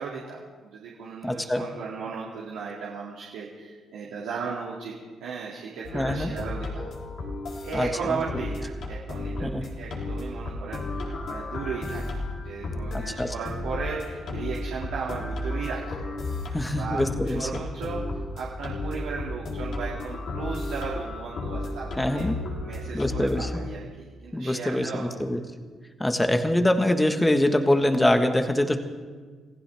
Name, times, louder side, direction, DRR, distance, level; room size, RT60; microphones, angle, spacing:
voice 1, 0.0-4.9 5.2-6.8 7.6-9.5 9.8-16.0 16.7-22.3 22.6-25.4, right 5 dB, 90° right, -5 dB, 2.4 m, -36 dB
voice 2, 1.2-1.6 5.9-6.3 7.7-8.2 9.4-9.6 12.9-13.3 16.5-17.6 22.0-22.4 22.9-23.5 24.3-25.4 26.0-28.8, left 1 dB, 10° left, 6 dB, 1.5 m, -24 dB
sound 1, 5.8-23.6, left 2 dB, 65° left, 3.3 m, -33 dB
27.0 x 15.5 x 3.5 m, 1.5 s
cardioid pair, 90°, 0 cm